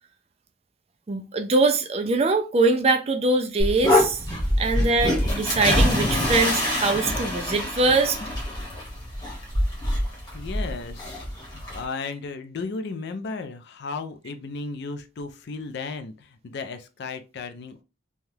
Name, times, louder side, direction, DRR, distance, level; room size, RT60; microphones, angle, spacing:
voice 1, 1.1-4.2 4.6-8.2, right 3 dB, 30° right, 0.3 m, -22 dB
sound 1, 3.6-11.8, left 1 dB, 20° left, 1.1 m, -25 dB
voice 2, 10.3-11.2 11.5-17.8, left 4 dB, 55° left, 0.4 m, -35 dB
3.2 x 2.3 x 2.7 m
head